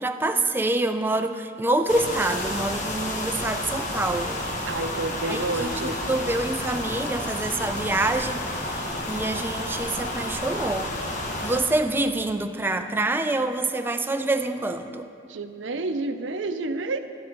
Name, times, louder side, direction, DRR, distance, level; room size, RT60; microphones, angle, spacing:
voice 1, 0.0-4.4 5.3-10.9 11.4-15.1, right 2 dB, 10° right, 7 dB, 0.3 m, -26 dB
sound 1, 1.9-11.6, left 1 dB, 45° left, 1.2 m, -31 dB
voice 2, 4.7-6.0 15.3-17.0, right 3 dB, 85° right, 8 dB, 0.6 m, -29 dB
12.0 x 9.6 x 4.5 m, 2.4 s
head